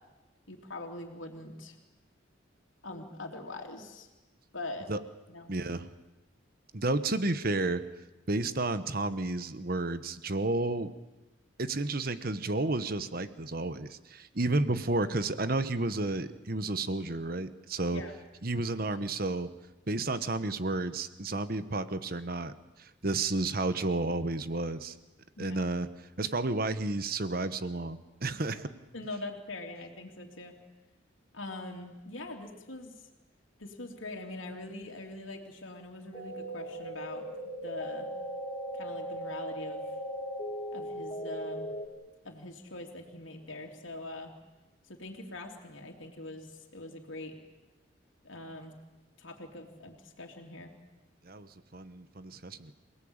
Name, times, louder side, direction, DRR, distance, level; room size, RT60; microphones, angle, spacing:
voice 1, 0.5-1.7 2.8-4.1 4.5-4.9 5.3-5.5 17.9-18.1 25.4-25.6 28.9-30.5 31.3-32.9 33.6-38.1 38.7-39.9 40.7-41.7 42.2-44.3 44.9-47.4 48.2-48.7 49.2-50.7, left 2 dB, 85° left, 1 dB, 3.1 m, -43 dB
voice 2, 5.5-5.9 6.7-7.8 8.3-10.9 11.6-18.0 18.4-19.5 19.9-22.5 22.8-24.9 25.4-25.9 26.2-28.7 51.2-52.7, right 2 dB, 50° right, 12 dB, 1.2 m, -31 dB
sound 1, 36.1-41.9, equal, 25° left, 3.3 m, -38 dB
27.5 x 18.5 x 8.9 m, 1.0 s
head